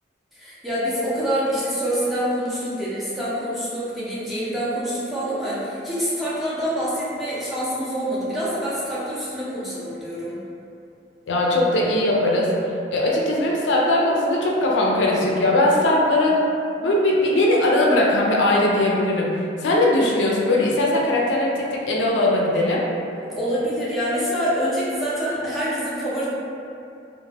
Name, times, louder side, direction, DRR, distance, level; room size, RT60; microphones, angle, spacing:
voice 1, 0.4-10.4 23.4-26.3, equal, ahead, -10 dB, 0.5 m, -26 dB
voice 2, 11.3-12.5 12.9-16.4 16.8-19.3 19.6-22.9, left 1 dB, 80° left, -3 dB, 0.4 m, -20 dB
2.2 x 2.1 x 3.2 m, 2.6 s
head